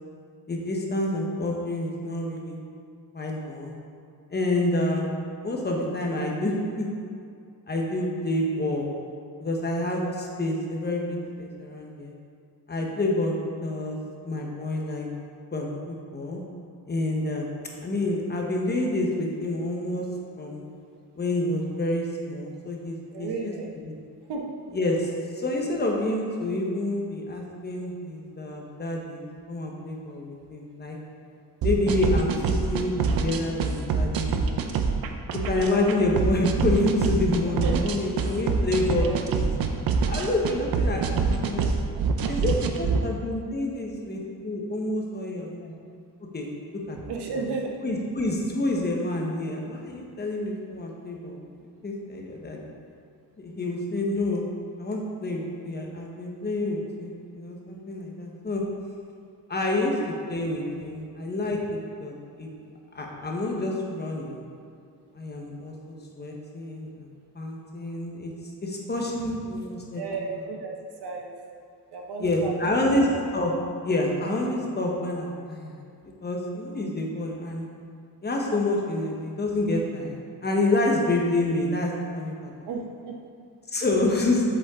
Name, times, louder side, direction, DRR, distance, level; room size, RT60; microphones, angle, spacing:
voice 1, 0.5-2.6 3.1-3.8 4.3-5.1 5.4-6.9 7.7-8.9 9.4-12.1 12.7-14.0 14.2-15.1 15.5-16.4 16.9-17.5 17.8-20.1 20.4-20.6 21.2-23.5 24.7-29.2 29.5-31.0 31.6-34.4 35.5-39.1 39.3-39.4 40.1-41.7 42.3-45.7 46.3-46.5 46.9-47.0 47.8-51.5 51.8-52.7 53.4-54.5 54.8-58.6 59.5-59.9 60.3-62.5 62.9-64.5 65.1-68.3 68.6-70.0 72.2-73.1 73.3-73.5 73.8-75.8 76.2-77.7 78.2-82.5 83.7-84.4, left 2 dB, 25° left, -1 dB, 1.2 m, -28 dB
voice 2, 23.1-23.7 24.3-24.5 37.6-37.8 39.0-39.3 41.9-42.1 47.1-47.8 70.0-70.7 71.0-71.3 71.9-72.8 82.6-83.2, right 4 dB, 80° right, 1 dB, 1.2 m, -33 dB
sound 1, 31.6-43.0, right 5 dB, 65° right, 0.7 m, -25 dB
7.9 x 7.3 x 3.7 m, 2.3 s
cardioid pair, 135°, 39 cm